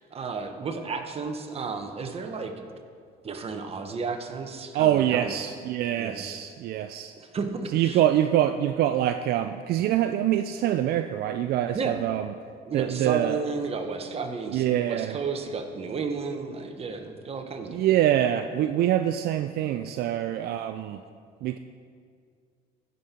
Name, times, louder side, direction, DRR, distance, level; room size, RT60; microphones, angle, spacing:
voice 1, 0.1-2.7 3.2-5.4 6.0-6.2 7.2-8.0 11.7-12.0 12.7-17.8, right 4 dB, 35° right, 5 dB, 1.0 m, -32 dB
voice 2, 4.7-7.1 7.7-12.3 12.7-13.4 14.5-15.2 17.7-21.0 21.4-21.6, right 11 dB, 70° right, 8 dB, 0.4 m, -25 dB
15.5 x 5.4 x 4.3 m, 2.2 s
cardioid pair, 110°, 17 cm